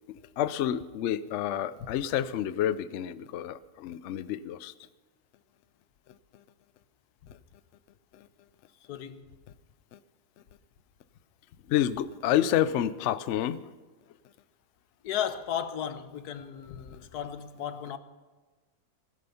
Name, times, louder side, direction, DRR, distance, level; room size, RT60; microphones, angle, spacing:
voice 1, 0.1-4.7 9.9-10.0 11.7-13.7, left 11 dB, 65° left, 0.7 m, -29 dB
voice 2, 8.9-9.2 15.0-18.0, left 9 dB, 85° left, 1.3 m, -34 dB
16.0 x 11.0 x 5.6 m
omnidirectional pair, 1.7 m